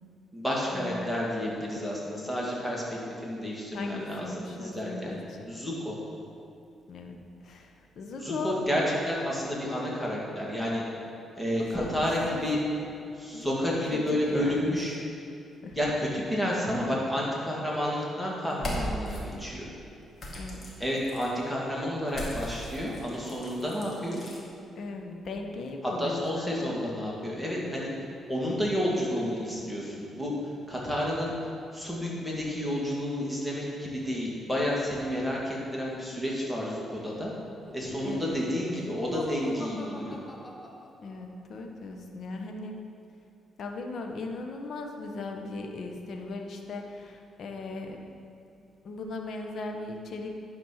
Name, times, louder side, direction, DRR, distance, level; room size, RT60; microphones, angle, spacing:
voice 1, 0.3-5.2 5.5-6.0 8.2-10.8 11.4-12.6 13.2-15.0 15.7-19.7 20.8-24.2 25.8-27.9 28.3-30.3 30.7-31.3 31.7-37.3 37.7-40.2, equal, 5° left, -4 dB, 2.1 m, -30 dB
voice 2, 3.7-5.5 6.9-7.2 7.4-8.6 11.6-12.4 13.3-14.7 15.6-15.8 20.3-20.7 24.8-26.8 38.0-38.5 41.0-42.8 43.6-48.0 48.8-50.5, left 3 dB, 60° left, 3 dB, 1.0 m, -38 dB
sound 1, 18.5-19.2 20.2-21.3 22.1-24.4, equal, 45° left, 2.1 m, -37 dB
Laughter, 37.6-41.3, left 1 dB, 20° left, 0.9 m, -42 dB
10.5 x 4.2 x 5.8 m, 2.6 s
cardioid pair, 95°, 0 cm